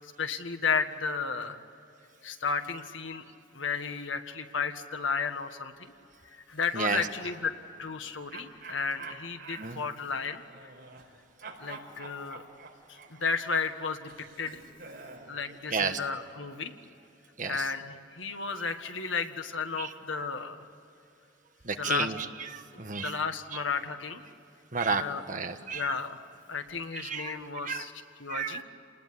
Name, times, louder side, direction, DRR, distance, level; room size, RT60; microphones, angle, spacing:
voice 1, 0.2-1.6 2.2-3.2 3.5-5.7 6.3-7.5 7.8-10.4 11.6-12.4 12.9-14.6 15.3-16.7 17.4-20.6 21.8-22.1 22.7-24.2 25.0-25.2 25.7-26.2 26.5-27.9 28.2-28.6, left 5 dB, 80° left, 7 dB, 1.7 m, -33 dB
sound 1, 6.5-7.4 8.3-11.1 11.4-15.3, right 4 dB, 60° right, 4.8 m, -47 dB
voice 2, 21.6-23.1 23.5-23.6 24.7-26.0 26.9-27.3 27.6-27.9 28.3-28.6, right 5 dB, 40° right, 7 dB, 1.4 m, -32 dB
29.5 x 20.0 x 9.9 m, 2.7 s
head